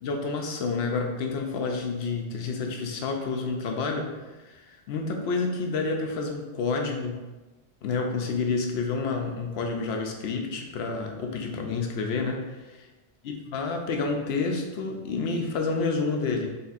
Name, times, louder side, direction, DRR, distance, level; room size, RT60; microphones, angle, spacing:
voice 1, 0.0-4.2 4.4-7.3 7.8-12.6 13.2-16.5, left 4 dB, 85° left, 3 dB, 0.8 m, -29 dB
4.2 x 3.3 x 2.4 m, 1.2 s
omnidirectional pair, 1.1 m